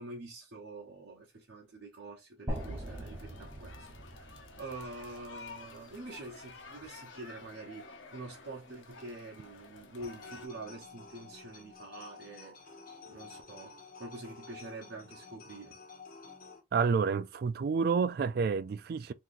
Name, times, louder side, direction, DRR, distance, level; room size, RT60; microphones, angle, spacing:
voice 1, 0.0-12.6 13.1-15.8, right 2 dB, 75° right, 0.9 m, -46 dB
sound 1, 2.5-10.5, left 3 dB, 75° left, 0.8 m, -51 dB
sound 2, 2.5-6.5, right 1 dB, 20° right, 0.8 m, -42 dB
sound 3, 10.0-16.6, left 4 dB, 45° left, 0.9 m, -51 dB
voice 2, 16.7-19.1, right 5 dB, 50° right, 0.3 m, -29 dB
3.7 x 2.9 x 2.5 m
head